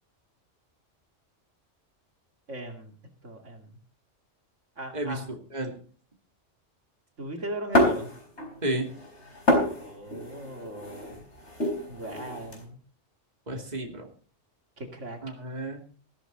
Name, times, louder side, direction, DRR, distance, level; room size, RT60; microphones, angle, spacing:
voice 1, 2.5-2.9 3.2-3.7 4.8-5.3 7.2-8.1 9.6-11.2 11.9-12.8 14.8-15.2, right 1 dB, 80° right, 4 dB, 2.9 m, -38 dB
voice 2, 4.9-5.7 8.6-8.9 13.5-14.1 15.2-15.8, right 1 dB, 35° right, 3 dB, 2.6 m, -32 dB
sound 1, 7.7-8.6 8.9-12.6, left 1 dB, 65° left, 4.9 m, -27 dB
15.0 x 13.0 x 3.9 m, 0.42 s
omnidirectional pair, 1.2 m